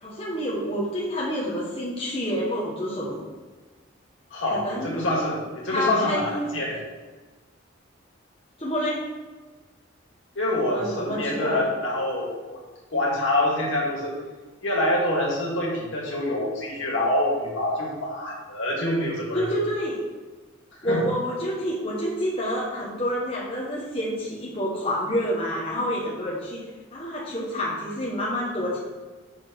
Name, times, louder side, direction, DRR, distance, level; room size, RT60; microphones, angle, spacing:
voice 1, 0.0-3.2 4.5-5.0 5.7-6.5 8.6-9.0 10.7-11.6 19.3-20.0 20.8-26.6 26.9-28.8, equal, 25° left, -5 dB, 1.3 m, -28 dB
voice 2, 4.3-6.8 10.4-12.6 12.9-14.2 14.6-19.6 20.8-21.0, left 1 dB, 70° left, -3 dB, 2.1 m, -26 dB
6.4 x 4.4 x 5.9 m, 1.3 s
head